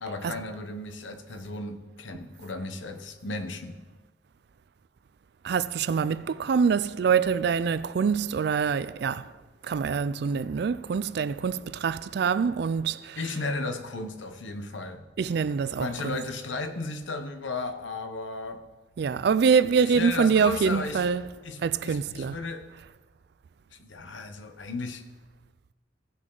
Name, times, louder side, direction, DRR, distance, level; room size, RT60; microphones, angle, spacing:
voice 1, 0.0-3.8 13.2-15.0 15.8-18.7 19.8-21.1 21.4-22.7 23.7-25.0, left 3 dB, 85° left, 0.9 m, -35 dB
voice 2, 5.4-9.3 9.6-13.2 15.2-16.2 19.0-21.3 21.6-22.4, right 6 dB, 60° right, 0.3 m, -25 dB
16.5 x 6.3 x 3.9 m
head